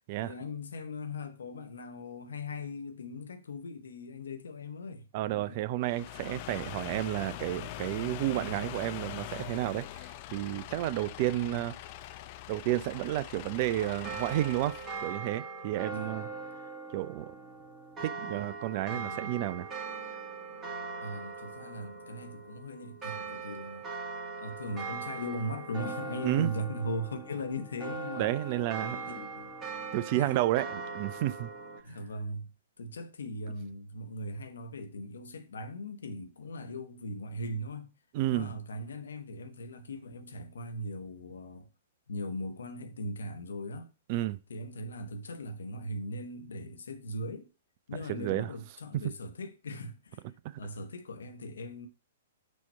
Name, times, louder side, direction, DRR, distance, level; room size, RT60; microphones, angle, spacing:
voice 1, 0.2-5.1 5.3-5.6 11.4-11.6 15.9-16.1 18.9-19.3 21.0-23.9 24.4-28.3 28.8-29.6 30.1-30.4 31.8-37.9 38.3-41.7 42.1-43.9 44.5-47.5 47.9-50.2 50.6-51.9, left 1 dB, 70° left, 0.9 m, -39 dB
voice 2, 5.1-11.8 12.5-16.3 16.9-17.3 18.0-19.7 26.2-26.5 28.2-29.0 29.9-31.5 38.1-38.5 44.1-44.4 48.1-48.5 50.4-50.6, right 15 dB, 45° right, 0.4 m, -31 dB
sound 1, 5.8-15.2, left 13 dB, 45° left, 0.4 m, -43 dB
sound 2, 13.8-31.8, right 4 dB, 20° right, 1.7 m, -41 dB
6.2 x 2.9 x 5.5 m
figure-of-eight pair, 115°, 0 cm